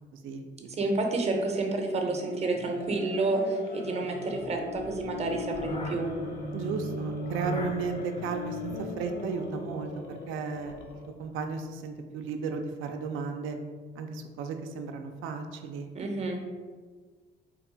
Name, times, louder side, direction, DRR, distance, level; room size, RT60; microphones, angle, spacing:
voice 1, 0.1-0.9 6.5-10.8 11.2-13.6 14.0-15.9, right 5 dB, 85° right, 5 dB, 0.4 m, -34 dB
voice 2, 0.8-6.1 15.9-16.4, right 2 dB, 35° right, 3 dB, 0.6 m, -29 dB
sound 1, 2.1-11.2, left 2 dB, 30° left, 0.4 m, -39 dB
sound 2, 2.5-11.2, left 1 dB, 60° left, 0.7 m, -44 dB
2.9 x 2.3 x 3.8 m, 1.5 s
cardioid pair, 90°, 20 cm